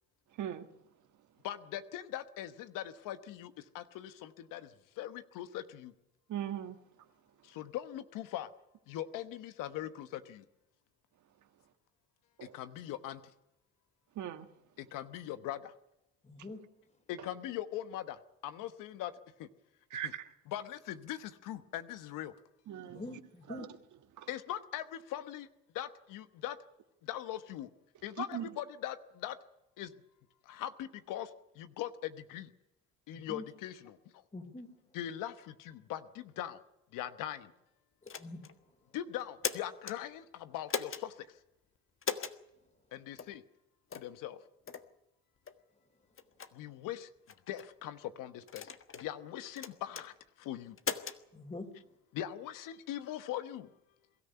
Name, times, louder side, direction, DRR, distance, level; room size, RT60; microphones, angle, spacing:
voice 1, 0.3-0.7 6.3-6.8 12.4-12.5 14.2-14.5 19.9-20.3 22.7-23.2 23.5-23.7 24.2-24.3 28.2-28.5, right 10 dB, 65° right, 1.7 m, -39 dB
voice 2, 1.4-5.9 7.4-8.5 8.9-10.4 12.4-13.2 14.8-15.7 17.1-19.1 19.4-19.5 20.0-20.1 20.5-22.3 24.3-25.5 25.7-26.6 27.0-27.7 28.0-29.4 29.8-29.9 30.4-32.5 33.1-34.0 34.9-36.6 36.9-37.5 38.9-41.3 42.9-43.4 43.9-44.4 46.5-47.1 47.5-50.8 52.1-53.7, left 12 dB, 80° left, 1.1 m, -41 dB
voice 3, 16.2-16.6 22.9-23.7 33.1-33.4 34.3-34.7 38.1-38.4 51.3-51.7, left 2 dB, 20° left, 3.7 m, -44 dB
sound 1, 38.1-38.5 39.2-40.0 40.7-41.0 42.0-42.4 43.2-43.3 43.9-44.1 44.7-44.9 45.5-45.6 46.2-46.5 47.3-47.7 48.5-49.1 49.6-50.1 50.8-51.2, left 7 dB, 40° left, 1.5 m, -38 dB
22.5 x 13.5 x 10.0 m
supercardioid pair, 70°, 32 cm